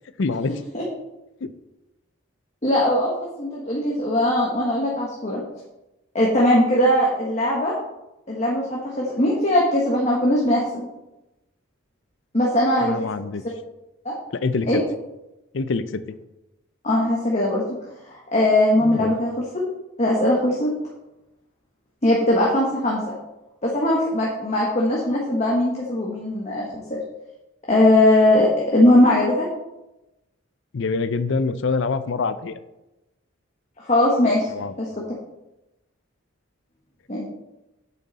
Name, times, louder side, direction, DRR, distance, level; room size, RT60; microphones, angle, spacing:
voice 1, 0.2-0.5 1.4-1.5 12.8-13.4 14.3-14.8 15.5-16.2 18.8-19.2 30.7-32.6 34.5-34.7, left 4 dB, 60° left, 13 dB, 0.5 m, -25 dB
voice 2, 2.6-5.4 6.1-7.7 8.3-10.9 12.3-13.0 14.0-14.1 14.7-14.8 16.8-17.6 18.1-19.3 20.0-20.7 22.0-23.0 23.6-27.0 27.7-29.5 33.8-34.5 34.8-34.9 37.1-37.2, left 1 dB, 30° left, -4 dB, 1.3 m, -20 dB
8.2 x 7.0 x 4.1 m, 0.96 s
head